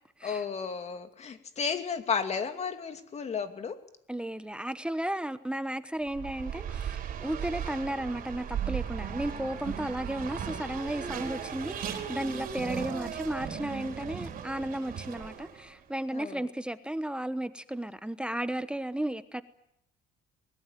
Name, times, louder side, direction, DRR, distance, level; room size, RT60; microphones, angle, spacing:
voice 1, 0.2-3.8 16.1-16.5, left 6 dB, 40° left, 2.6 m, -33 dB
voice 2, 4.1-19.4, right 1 dB, 5° right, 1.0 m, -34 dB
Race car auto racing, 6.1-15.7, right 8 dB, 55° right, 4.9 m, -37 dB
23.5 x 21.0 x 9.1 m
cardioid pair, 110°, 17 cm